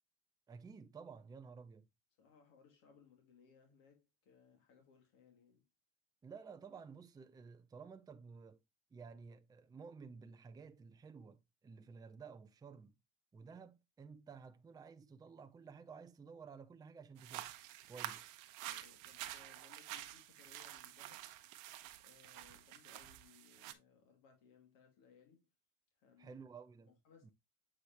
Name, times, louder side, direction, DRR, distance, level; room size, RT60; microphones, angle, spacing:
voice 1, 0.5-1.9 6.2-8.6 8.9-13.0 13.3-17.5 17.9-18.2 26.2-27.0 27.2-27.3, right 5 dB, 10° right, 0.6 m, -54 dB
voice 2, 2.2-5.6 18.6-21.3 22.0-25.5 26.0-26.4 26.9-27.3, left 6 dB, 55° left, 2.8 m, -66 dB
sound 1, 17.2-23.7, right 14 dB, 50° right, 0.9 m, -49 dB
8.2 x 4.9 x 2.9 m
hypercardioid pair, 100°, 38 cm